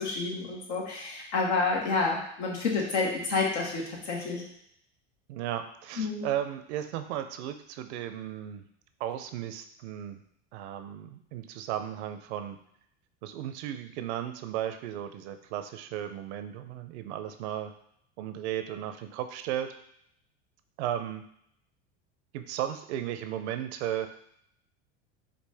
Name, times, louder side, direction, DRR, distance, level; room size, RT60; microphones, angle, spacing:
voice 1, 0.0-4.4 6.0-6.3, left 4 dB, 80° left, -1 dB, 1.4 m, -29 dB
voice 2, 5.3-8.6 9.0-10.2 10.5-12.6 13.2-17.7 18.2-19.7 20.8-21.2 22.3-24.1, right 11 dB, 75° right, 8 dB, 0.6 m, -35 dB
5.1 x 2.4 x 3.4 m, 0.71 s
hypercardioid pair, 95°, 33 cm